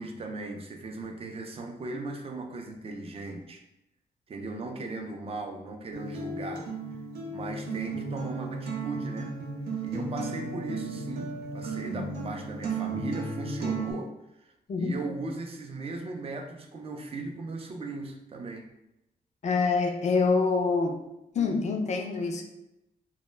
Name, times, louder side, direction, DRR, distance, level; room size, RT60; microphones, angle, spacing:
voice 1, 0.0-3.6 4.3-6.7 7.3-9.3 9.8-14.1 14.4-18.7, right 2 dB, 35° right, 4 dB, 0.4 m, -38 dB
Acoustic guitar, 5.9-13.9, right 3 dB, 90° right, 0.6 m, -34 dB
voice 2, 19.4-21.1 21.3-22.4, left 4 dB, 45° left, 4 dB, 0.4 m, -26 dB
2.1 x 2.1 x 3.2 m, 0.87 s
cardioid pair, 100°, 16 cm